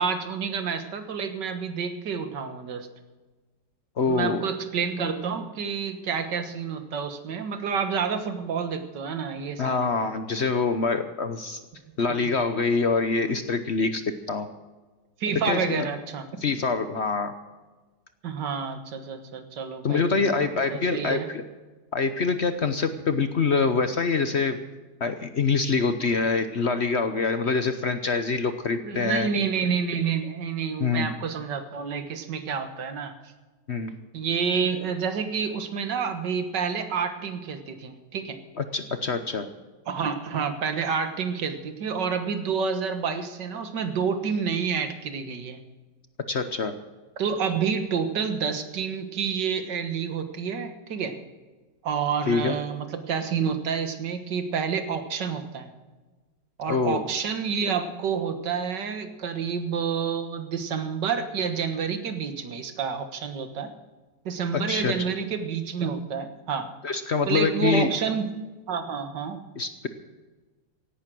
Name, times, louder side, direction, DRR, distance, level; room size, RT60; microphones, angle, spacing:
voice 1, 0.0-2.9 4.1-9.9 12.1-12.3 15.2-16.3 18.2-21.3 28.8-33.1 34.1-38.4 39.9-45.6 47.2-51.2 51.8-55.7 56.6-63.7 64.3-66.7 67.3-68.3 68.7-69.4, right 6 dB, 80° right, 8 dB, 2.0 m, -29 dB
voice 2, 4.0-4.4 9.6-11.6 12.0-14.5 15.4-15.9 16.4-17.3 19.8-21.4 21.9-24.6 25.0-29.3 30.8-31.1 33.7-33.9 38.6-39.5 46.3-46.7 52.3-52.5 56.7-57.0 64.5-65.1 66.8-67.9 69.6-69.9, left 4 dB, 50° left, 10 dB, 0.9 m, -25 dB
17.0 x 11.5 x 6.1 m, 1.3 s
omnidirectional pair, 1.9 m